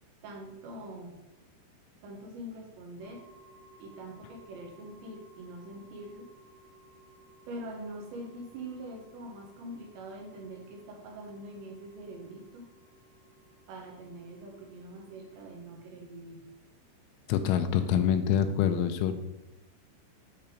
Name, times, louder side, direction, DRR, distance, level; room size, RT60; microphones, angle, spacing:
voice 1, 0.2-1.2 2.0-3.2 3.8-6.3 7.5-12.7 13.7-16.4, right 1 dB, 70° right, -1 dB, 3.5 m, -44 dB
sound 1, 3.0-15.6, right 1 dB, 55° right, 2.1 m, -59 dB
voice 2, 17.3-19.1, left 9 dB, 85° left, 9 dB, 3.1 m, -26 dB
8.8 x 4.3 x 5.1 m, 0.93 s
omnidirectional pair, 5.4 m